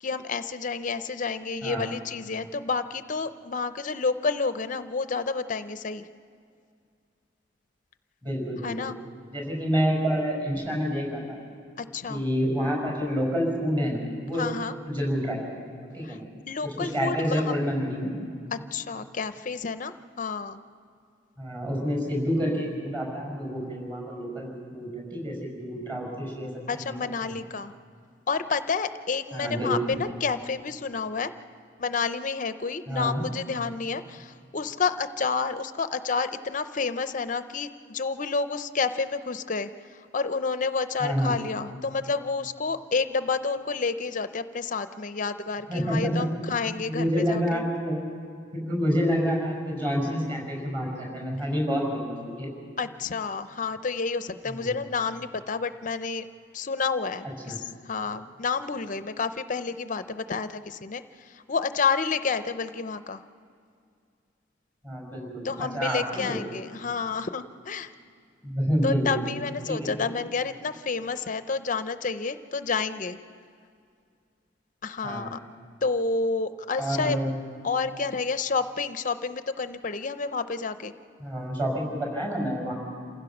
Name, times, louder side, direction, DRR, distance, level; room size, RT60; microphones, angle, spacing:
voice 1, 0.0-6.0 8.6-9.0 11.8-12.2 14.4-14.7 16.0-16.2 16.5-17.5 18.5-20.6 26.7-27.7 28.3-31.3 31.8-39.7 40.1-47.6 52.8-56.3 56.5-63.2 65.4-67.9 68.8-73.2 74.8-75.4 75.8-77.2 77.6-80.9, left 4 dB, 40° left, 11 dB, 0.5 m, -29 dB
voice 2, 8.2-8.9 9.3-11.4 12.1-14.4 14.9-15.6 15.9-16.3 16.6-18.1 21.4-27.0 27.2-27.3 29.3-30.0 32.9-33.2 41.0-41.3 45.7-46.5 46.8-48.0 48.5-52.5 54.5-54.7 57.5-57.6 64.8-66.4 68.4-69.3 69.7-69.9 75.0-75.3 76.8-77.3 81.2-82.7, equal, 25° right, 0 dB, 5.8 m, -28 dB
28.0 x 16.0 x 6.0 m, 2.3 s
head